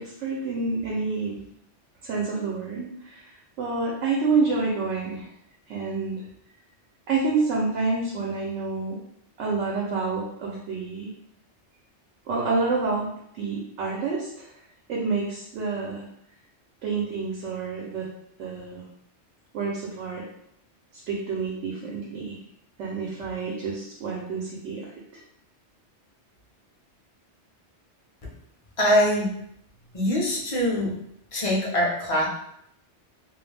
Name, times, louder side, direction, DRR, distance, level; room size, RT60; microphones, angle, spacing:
voice 1, 0.0-1.4 2.0-5.3 5.7-6.2 7.1-9.0 9.4-11.1 12.3-14.5 14.9-16.0 16.8-18.1 18.4-18.8 19.5-20.2 21.1-22.4 22.8-24.9, right 4 dB, 90° right, -3 dB, 0.9 m, -28 dB
voice 2, 28.8-29.3 29.9-30.9 31.3-32.3, equal, 35° left, -4 dB, 0.6 m, -23 dB
2.3 x 2.0 x 3.2 m, 0.74 s
omnidirectional pair, 1.2 m